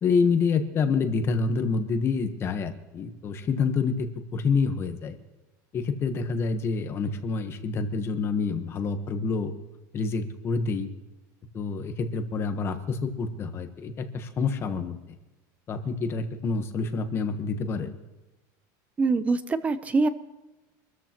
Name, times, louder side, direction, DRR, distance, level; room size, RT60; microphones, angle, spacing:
voice 1, 0.0-5.2 5.7-9.5 9.9-10.9 11.5-15.0 15.7-17.9, left 4 dB, 25° left, 8 dB, 1.2 m, -27 dB
voice 2, 19.0-20.1, right 3 dB, 15° right, 12 dB, 0.7 m, -24 dB
25.0 x 14.0 x 3.0 m, 1.1 s
cardioid pair, 165°, 10 cm